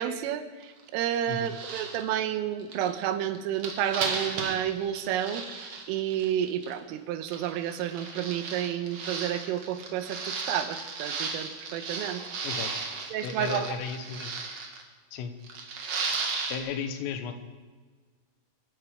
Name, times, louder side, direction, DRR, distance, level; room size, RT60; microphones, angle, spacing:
voice 1, 0.0-5.6 5.9-12.2 13.1-13.8, right 10 dB, 85° right, 9 dB, 3.6 m, -30 dB
sound 1, 0.6-0.8 1.1-2.0 2.6-6.7 7.3-14.8 15.4-16.6, right 4 dB, 60° right, 1.7 m, -35 dB
voice 2, 13.2-14.3 15.1-15.3 16.3-17.3, left 6 dB, 90° left, 8 dB, 3.8 m, -35 dB
23.5 x 12.0 x 5.0 m, 1.5 s
omnidirectional pair, 5.7 m